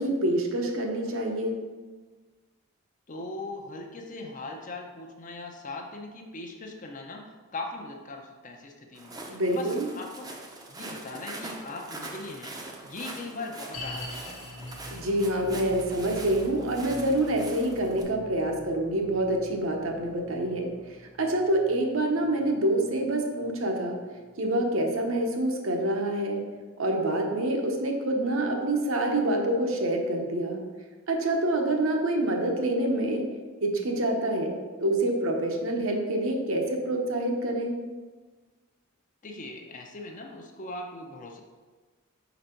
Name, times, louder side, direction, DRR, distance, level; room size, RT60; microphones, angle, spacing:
voice 1, 0.0-1.6 9.3-9.9 14.9-24.0 24.4-26.4 26.8-30.6 31.1-33.3 33.6-34.5 34.8-37.8, right 1 dB, 65° right, 2 dB, 0.8 m, -27 dB
voice 2, 3.1-10.3 10.7-12.6 12.8-14.4 39.2-41.4, left 2 dB, 35° left, 2 dB, 0.6 m, -40 dB
Walk footsteps, 8.9-18.0, right 2 dB, 15° right, 0.6 m, -43 dB
sound 1, 13.7-25.0 25.3-25.4 26.0-26.1, left 1 dB, 90° left, 1.0 m, -45 dB
5.4 x 4.0 x 4.4 m, 1.4 s
head